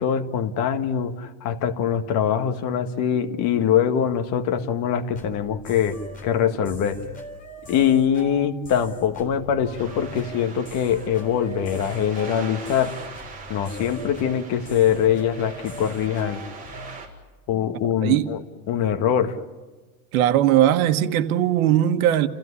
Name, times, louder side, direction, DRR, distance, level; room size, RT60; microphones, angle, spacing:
voice 1, 0.0-7.0 7.7-12.9 13.5-16.4 17.5-18.4 18.7-19.4, left 8 dB, 40° left, 1.7 m, -23 dB
sound 1, 5.1-17.0, left 1 dB, 20° left, 3.7 m, -40 dB
sound 2, 9.8-17.1, right 4 dB, 20° right, 4.2 m, -42 dB
voice 2, 17.8-18.3 20.1-22.3, right 12 dB, 80° right, 1.6 m, -19 dB
29.5 x 15.5 x 9.9 m
supercardioid pair, 165°, 42 cm